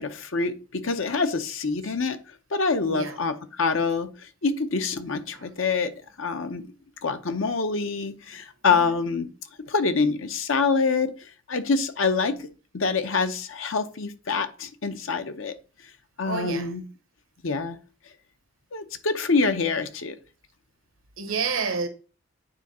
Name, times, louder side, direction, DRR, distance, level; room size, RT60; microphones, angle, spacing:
voice 1, 0.0-2.2 2.5-5.9 6.2-6.6 7.0-9.3 9.7-11.1 11.5-12.5 12.7-15.5 16.2-16.8 17.4-17.8 18.7-20.2, left 4 dB, 80° left, 0.8 m, -26 dB
voice 2, 2.9-3.2 5.3-5.5 8.7-9.0 16.2-16.7 21.2-21.9, right 5 dB, 90° right, 1.1 m, -30 dB
9.0 x 3.6 x 4.2 m
head